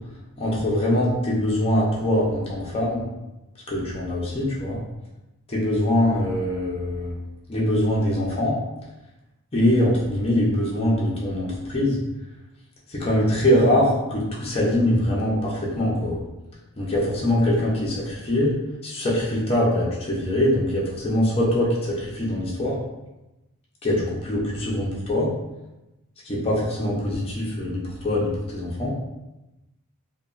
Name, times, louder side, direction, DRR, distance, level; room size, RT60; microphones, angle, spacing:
voice 1, 0.4-3.0 3.7-4.8 5.5-7.2 7.5-8.5 9.5-12.0 12.9-16.2 16.8-18.5 18.8-22.7 23.8-25.3 26.2-28.9, left 1 dB, 25° left, -5 dB, 0.5 m, -23 dB
2.9 x 2.2 x 2.4 m, 1.0 s
head